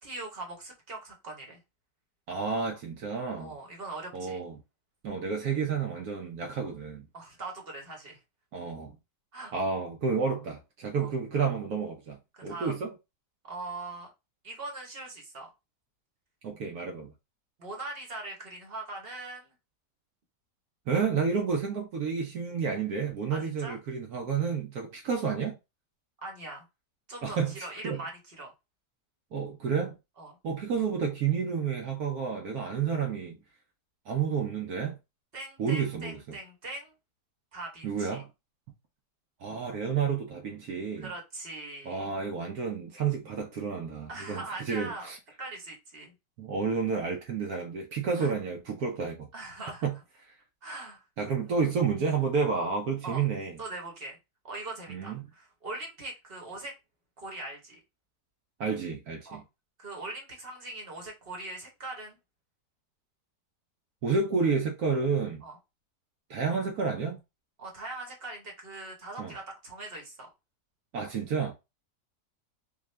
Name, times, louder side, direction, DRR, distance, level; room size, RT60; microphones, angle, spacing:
voice 1, 0.0-1.6 3.4-4.4 7.1-8.2 9.3-9.5 10.9-11.1 12.3-12.8 13.4-14.1 14.4-15.5 17.6-19.5 23.3-23.8 26.2-26.7 27.1-28.5 30.2-30.3 35.3-36.9 37.5-38.2 41.0-42.1 44.1-45.1 45.4-46.1 48.2-48.3 49.3-49.8 50.6-51.0 51.5-51.7 53.0-53.3 53.6-54.2 54.4-56.7 57.2-57.8 59.2-59.4 59.8-62.2 65.4-65.6 67.6-70.3, right 2 dB, 40° right, 1.2 m, -41 dB
voice 2, 2.3-3.5 4.1-4.6 5.0-7.0 8.5-8.9 9.5-12.9 16.4-17.1 20.9-25.6 27.2-28.0 29.3-30.0 30.4-33.4 34.1-35.0 35.6-36.4 37.8-38.3 39.4-41.1 41.9-45.2 46.4-49.3 49.8-49.9 51.2-53.5 54.9-55.2 58.6-59.4 64.0-65.4 66.3-67.2 69.2-69.3 70.9-71.5, right 5 dB, 65° right, 1.1 m, -30 dB
3.6 x 2.3 x 3.2 m
omnidirectional pair, 1.8 m